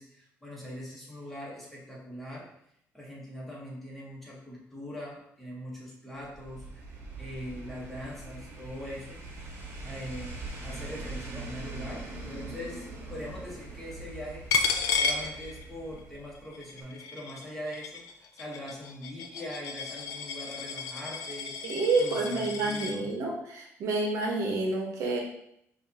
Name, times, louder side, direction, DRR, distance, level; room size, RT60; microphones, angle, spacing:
voice 1, 0.0-2.5 2.9-9.2 9.8-14.4 15.0-21.6 22.0-23.1, equal, 5° left, -5 dB, 1.2 m, -42 dB
sound 1, 6.3-16.6 16.8-16.9, right 2 dB, 45° right, 0.9 m, -42 dB
Coin (dropping), 14.5-16.0 16.4-23.0, left 5 dB, 80° left, 0.4 m, -33 dB
voice 2, 21.6-25.2, right 3 dB, 70° right, 1 dB, 0.9 m, -28 dB
5.1 x 2.5 x 2.8 m, 0.74 s
cardioid pair, 135°, 5 cm